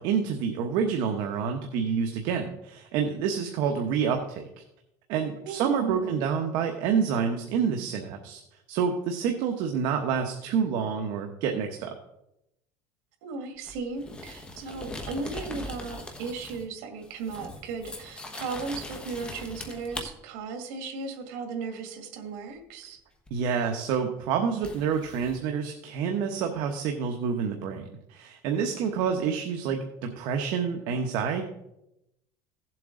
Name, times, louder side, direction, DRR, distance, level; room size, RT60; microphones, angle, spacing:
voice 1, 0.0-4.4 5.1-8.4 8.7-11.9 23.3-31.4, right 6 dB, 60° right, 4 dB, 1.1 m, -28 dB
voice 2, 5.4-6.2 13.2-23.0, right 4 dB, 85° right, 5 dB, 1.9 m, -36 dB
sound 1, 13.7-16.7 17.0-20.1 23.3-23.4 24.6-25.4, left 2 dB, 10° left, 1.3 m, -40 dB
16.0 x 7.6 x 3.8 m, 0.86 s
cardioid pair, 165°, 9 cm